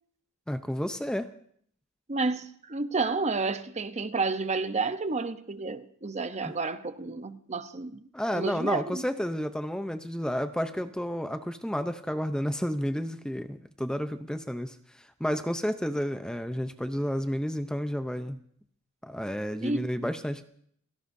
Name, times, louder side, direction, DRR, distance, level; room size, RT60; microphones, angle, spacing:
voice 1, 0.5-1.3 6.4-6.5 8.1-18.4 19.0-20.4, equal, 5° left, 0.6 m, -31 dB
voice 2, 2.1-8.0 8.3-9.0 19.6-20.1, right 3 dB, 35° right, 0.8 m, -31 dB
29.5 x 16.5 x 2.7 m
head